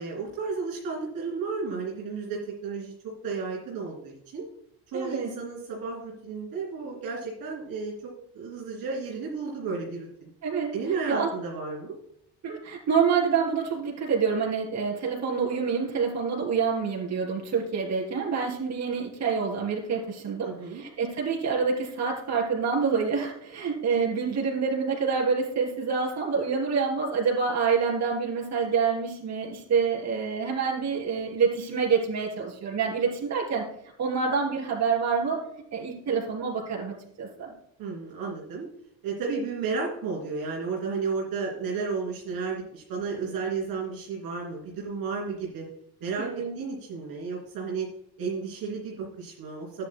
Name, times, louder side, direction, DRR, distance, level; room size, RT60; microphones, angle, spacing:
voice 1, 0.0-2.9 3.2-4.5 4.9-10.3 10.7-11.9 20.4-20.8 37.8-38.7 39.0-45.7 46.0-47.9 48.2-49.9, right 4 dB, 60° right, -3 dB, 3.2 m, -33 dB
voice 2, 4.9-5.3 10.4-10.7 11.1-11.3 12.4-33.6 34.0-35.4 35.7-37.5 46.2-46.5, right 5 dB, 40° right, -2 dB, 3.7 m, -27 dB
13.5 x 9.9 x 2.2 m, 0.74 s
cardioid pair, 120°, 40 cm